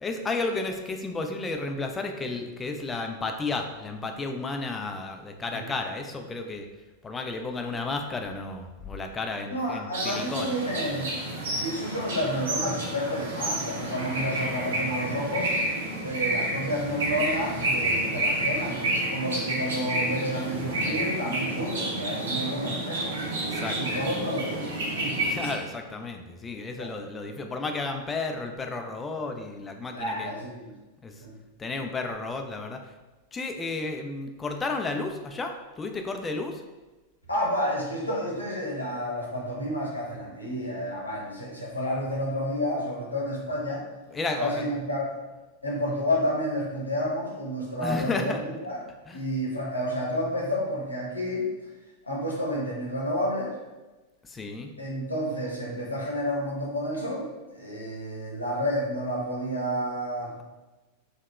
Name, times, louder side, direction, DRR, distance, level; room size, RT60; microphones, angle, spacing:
voice 1, 0.0-6.7 7.0-10.6 23.4-24.0 25.2-30.3 31.0-31.1 31.6-32.8 33.3-36.6 44.1-44.7 47.8-48.4 49.1-49.2 54.2-54.7, left 3 dB, 15° left, 4 dB, 0.3 m, -32 dB
voice 2, 9.4-11.1 11.5-15.5 16.0-23.1 23.6-25.2 26.8-26.9 29.9-30.7 31.2-31.3 37.3-43.8 44.4-45.1 45.6-48.8 49.1-51.5 52.1-53.5 54.8-60.3, equal, 80° left, -3 dB, 0.7 m, -30 dB
sound 1, 9.9-25.6, right 1 dB, 65° right, 0.8 m, -30 dB
3.0 x 2.7 x 2.3 m, 1.1 s
figure-of-eight pair, 90°, 0 cm